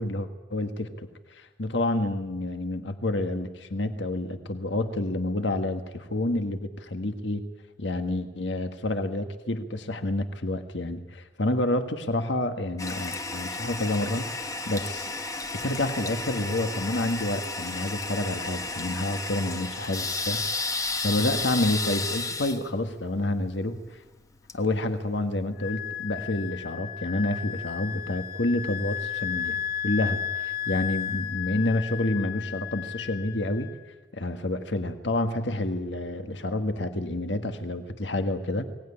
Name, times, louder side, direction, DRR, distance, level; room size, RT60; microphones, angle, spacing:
voice 1, 0.0-7.4 7.8-15.1 15.6-20.5 20.7-24.0 24.5-29.6 29.8-33.7 34.1-38.6, left 1 dB, 70° left, 8 dB, 1.6 m, -29 dB
Toilet flush, 12.8-25.4, left 3 dB, 15° left, 1.2 m, -33 dB
Wind instrument woodwind instrument, 25.6-33.9, left 9 dB, 50° left, 1.0 m, -34 dB
22.5 x 18.5 x 10.0 m, 1.2 s
head